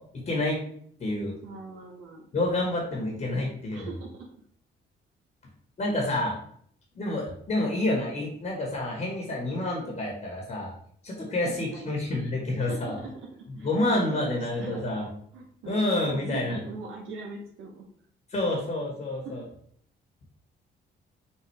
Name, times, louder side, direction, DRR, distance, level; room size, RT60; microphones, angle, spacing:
voice 1, 0.1-0.6 1.0-1.4 2.3-3.9 5.8-6.3 6.9-10.7 11.0-13.0 13.6-15.1 15.6-16.6 18.3-19.4, left 1 dB, 40° left, -1 dB, 1.5 m, -28 dB
voice 2, 1.4-2.2 3.7-4.3 11.4-11.9 12.6-13.1 13.5-13.7 14.1-14.9 15.3-17.9 19.2-19.4, right 4 dB, 85° right, -2 dB, 0.9 m, -41 dB
5.7 x 2.7 x 3.3 m, 0.64 s
cardioid pair, 90°, 20 cm